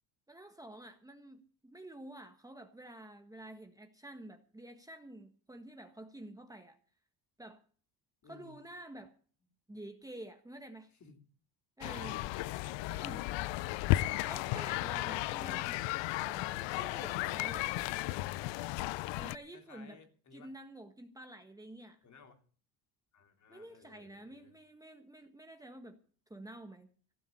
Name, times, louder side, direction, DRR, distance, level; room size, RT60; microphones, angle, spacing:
voice 1, 0.3-6.8 7.4-7.6 8.3-9.1 9.7-10.9 11.8-12.2 12.9-13.2 14.2-15.9 16.2-17.7 19.2-20.0 20.3-22.0 23.5-26.0 26.3-26.9, right 1 dB, 10° right, 5 dB, 1.5 m, -49 dB
voice 2, 8.2-8.6 11.0-11.2 11.8-12.3 12.6-13.2 13.9-14.9 19.5-20.5 22.0-22.4 23.1-24.5, left 5 dB, 40° left, 6 dB, 3.2 m, -56 dB
sound 1, 11.8-19.4, left 18 dB, 85° left, 0.6 m, -34 dB
16.0 x 7.5 x 8.6 m, 0.43 s
cardioid pair, 130°, 43 cm